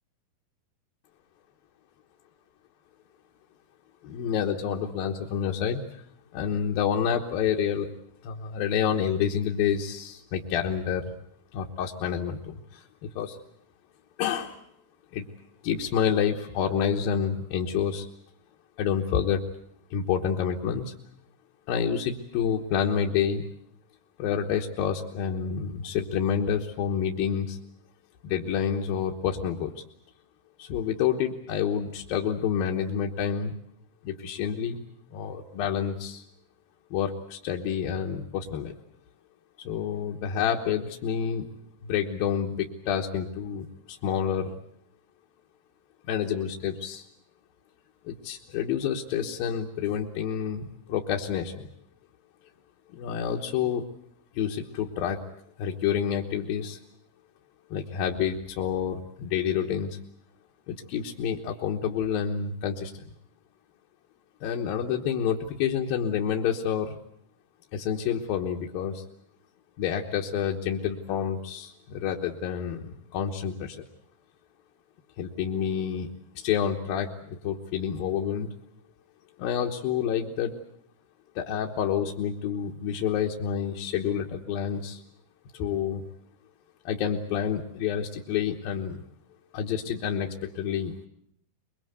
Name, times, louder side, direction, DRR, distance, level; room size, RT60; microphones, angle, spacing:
voice 1, 4.0-5.8 6.3-7.9 8.2-11.1 11.5-13.4 14.2-14.5 15.1-15.3 15.6-18.1 18.8-19.4 19.9-20.9 21.7-23.4 24.2-27.6 28.2-29.8 30.6-33.5 34.0-34.8 35.1-36.2 36.9-38.7 39.6-41.5 41.8-44.6 46.1-47.0 48.0-51.7 52.9-53.9 54.3-55.2 55.6-56.8 57.7-60.0 60.7-62.9 64.4-67.0 67.7-69.0 69.8-73.9 75.2-76.1 76.3-78.5 79.4-80.5 81.4-85.0 85.5-86.0 86.8-89.0 89.5-91.1, left 8 dB, 70° left, 0 dB, 2.9 m, -28 dB
24.0 x 22.5 x 8.1 m, 0.71 s
omnidirectional pair, 4.6 m